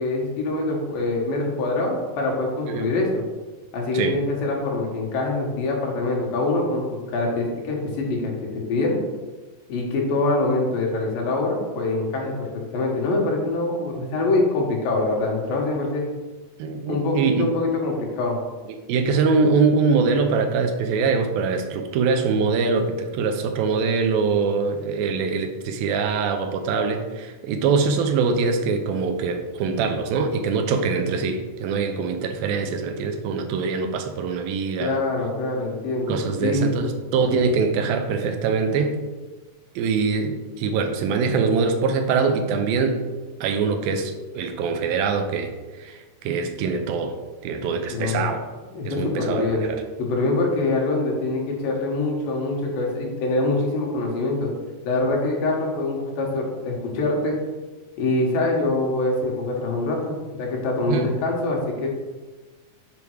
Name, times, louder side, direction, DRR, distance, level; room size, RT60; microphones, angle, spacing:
voice 1, 0.0-3.2 3.7-8.3 8.7-9.0 9.7-16.1 16.9-18.4 34.8-36.7 47.9-48.3 48.7-49.7 50.0-54.5 54.8-57.4 58.0-61.9, left 2 dB, 75° left, -1 dB, 3.1 m, -24 dB
voice 2, 16.6-17.5 18.9-35.0 36.1-39.0 39.8-43.0 43.4-45.5 45.8-47.2 47.4-48.5 48.9-49.8 60.9-61.1, right 5 dB, 85° right, 6 dB, 2.5 m, -23 dB
7.1 x 5.2 x 4.7 m, 1.2 s
omnidirectional pair, 4.2 m